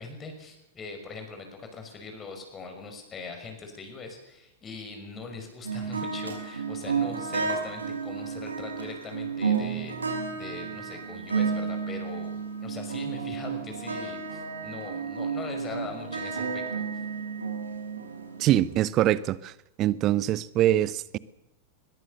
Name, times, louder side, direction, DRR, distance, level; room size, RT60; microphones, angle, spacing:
voice 1, 0.0-12.3 12.6-17.0, left 4 dB, 25° left, 5.6 m, -41 dB
sound 1, 5.6-18.7, right 5 dB, 75° right, 5.3 m, -32 dB
voice 2, 18.4-19.5 19.8-21.2, right 13 dB, 35° right, 1.0 m, -23 dB
22.0 x 21.5 x 6.9 m
figure-of-eight pair, 90°, 0 cm